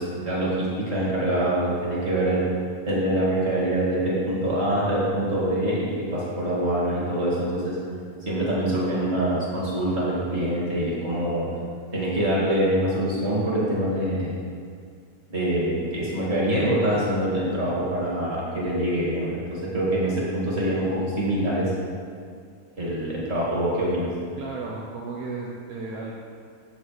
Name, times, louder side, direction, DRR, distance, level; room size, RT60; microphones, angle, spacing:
voice 1, 0.0-2.4 2.9-7.8 8.3-11.5 11.9-14.3 15.3-21.7 22.8-24.1, right 1 dB, 35° right, -6 dB, 2.1 m, -25 dB
voice 2, 24.4-26.1, right 3 dB, 60° right, -3 dB, 1.0 m, -34 dB
7.5 x 5.4 x 4.7 m, 2.1 s
omnidirectional pair, 2.1 m